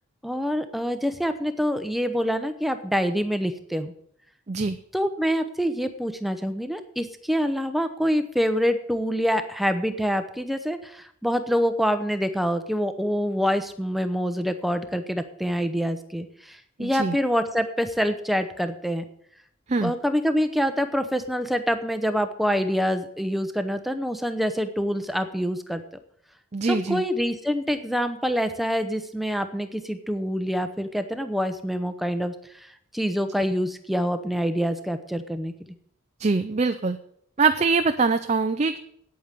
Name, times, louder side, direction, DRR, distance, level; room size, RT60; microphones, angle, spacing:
voice 1, 0.2-3.9 4.9-19.0 19.8-25.8 26.7-32.7 32.9-35.5, equal, ahead, 9 dB, 0.8 m, -26 dB
voice 2, 16.8-17.2 19.7-19.9 26.5-27.0 36.2-37.0 37.4-38.8, right 4 dB, 30° right, 8 dB, 0.5 m, -23 dB
9.1 x 8.6 x 8.2 m, 0.70 s
head